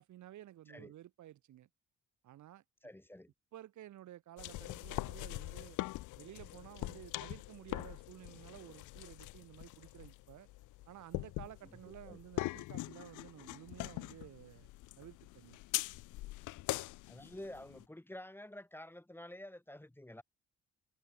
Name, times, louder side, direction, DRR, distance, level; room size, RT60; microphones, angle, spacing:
voice 1, 0.0-1.7 2.2-2.6 3.5-5.8 6.2-10.5 10.9-14.7 15.0-15.6, right 13 dB, 75° right, 2.0 m, -53 dB
voice 2, 2.8-3.3 11.6-12.2 16.6-20.2, left 1 dB, 5° left, 2.4 m, -50 dB
sound 1, 4.4-17.8, left 19 dB, 80° left, 0.5 m, -43 dB
cardioid pair, 90°, 30 cm